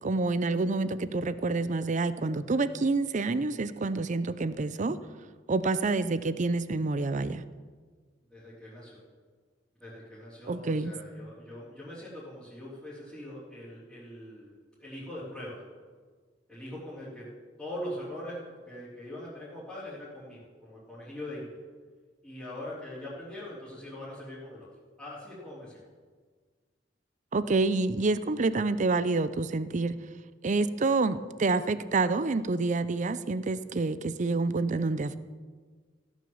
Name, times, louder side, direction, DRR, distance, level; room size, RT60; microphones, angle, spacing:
voice 1, 0.0-5.0 5.5-7.4 10.5-10.9 27.3-30.0 30.4-35.2, right 3 dB, 40° right, 14 dB, 0.5 m, -28 dB
voice 2, 8.3-9.0 9.8-15.6 16.5-17.2 17.6-18.4 18.7-21.6 22.2-24.7 25.0-25.8, left 1 dB, 5° left, -12 dB, 3.3 m, -42 dB
16.0 x 6.3 x 7.0 m, 1.5 s
head